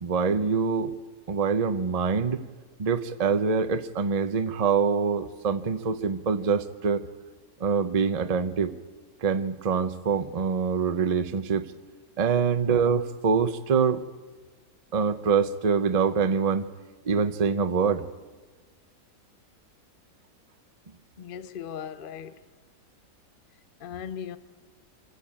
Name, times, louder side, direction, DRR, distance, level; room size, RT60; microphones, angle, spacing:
voice 1, 0.0-0.9 1.3-2.4 2.8-7.0 7.6-8.7 9.2-11.7 12.2-14.0 14.9-16.7 17.0-18.0, right 5 dB, 30° right, 0.7 m, -25 dB
voice 2, 21.2-22.4 23.8-24.4, left 8 dB, 40° left, 0.8 m, -38 dB
25.5 x 14.0 x 8.7 m
omnidirectional pair, 1.8 m